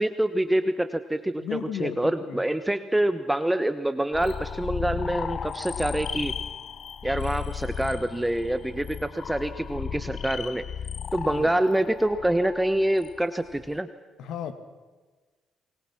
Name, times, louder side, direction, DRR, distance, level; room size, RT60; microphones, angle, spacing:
voice 1, 0.0-6.3 7.0-10.6 11.1-13.9, right 1 dB, 10° right, 11 dB, 1.2 m, -26 dB
voice 2, 1.4-2.4 11.3-11.5 14.2-14.5, left 9 dB, 80° left, 11 dB, 1.9 m, -34 dB
sound 1, 4.1-13.8, left 7 dB, 55° left, 0.8 m, -35 dB
27.0 x 22.0 x 6.0 m, 1.4 s
cardioid pair, 90°, 0 cm